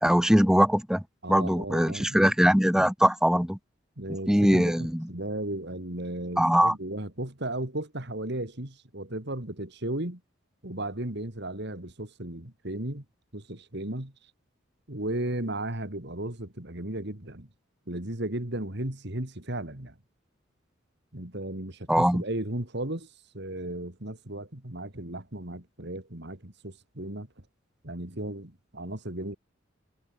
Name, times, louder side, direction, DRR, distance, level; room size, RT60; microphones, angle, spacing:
voice 1, 0.0-1.0 1.3-3.6 4.3-5.1 6.4-6.8 21.9-22.2, equal, 5° right, 1.1 m, -22 dB
voice 2, 1.2-2.3 4.0-10.2 10.6-13.0 13.3-14.1 14.9-17.5 17.9-20.0 21.1-23.1 23.3-27.3 27.8-29.4, right 1 dB, 55° right, 3.3 m, -35 dB
head